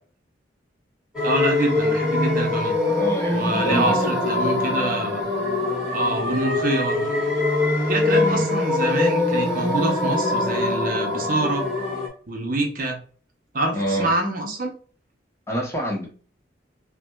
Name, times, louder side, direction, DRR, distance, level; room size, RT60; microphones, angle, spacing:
sound 1, 1.1-12.1, left 2 dB, 5° right, 1.5 m, -23 dB
voice 1, 1.2-2.7 3.3-5.2 5.9-7.0 7.9-11.6 12.3-13.0 13.5-14.7, right 2 dB, 45° right, 2 dB, 0.8 m, -26 dB
voice 2, 2.9-4.2 8.1-8.4 13.7-14.1 15.5-16.1, right 1 dB, 15° left, -1 dB, 0.9 m, -27 dB
5.7 x 2.2 x 2.3 m, 0.40 s
head